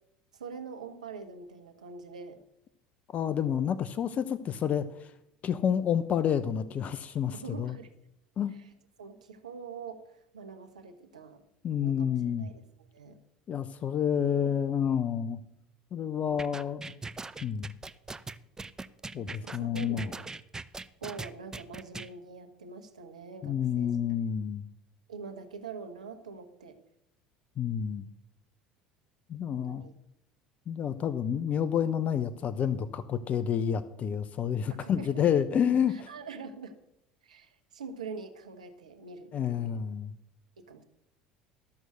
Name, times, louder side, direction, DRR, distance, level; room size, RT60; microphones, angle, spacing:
voice 1, 0.3-2.4 7.3-7.9 8.5-8.7 9.0-11.4 11.8-12.6 12.9-13.2 16.2-16.4 19.1-20.3 21.0-24.0 25.1-26.8 29.5-29.9 30.8-31.1 34.7-35.4 35.9-36.7 37.2-39.8 40.6-40.8, right 5 dB, 85° right, 8 dB, 1.1 m, -45 dB
voice 2, 3.1-5.1 5.4-7.7 8.4-8.5 11.6-12.5 13.5-15.4 15.9-16.9 17.4-17.7 19.1-20.1 23.4-24.6 27.6-28.1 29.3-29.8 30.7-36.1 39.3-40.1, left 8 dB, 40° left, 13 dB, 0.7 m, -29 dB
sound 1, 16.4-22.1, right 3 dB, 15° right, 0.6 m, -40 dB
13.5 x 6.3 x 6.7 m, 0.80 s
hypercardioid pair, 70°, 4 cm